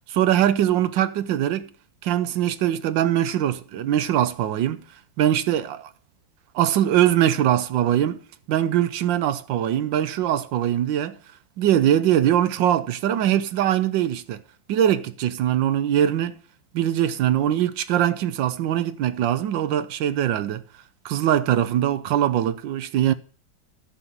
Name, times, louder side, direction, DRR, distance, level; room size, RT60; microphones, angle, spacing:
voice 1, 0.1-1.7 2.0-4.8 5.2-5.9 6.5-8.2 8.5-11.2 11.6-14.4 14.7-16.4 16.7-20.6 21.0-23.1, right 11 dB, 75° right, 1.4 m, -22 dB
11.0 x 5.5 x 7.3 m
omnidirectional pair, 2.1 m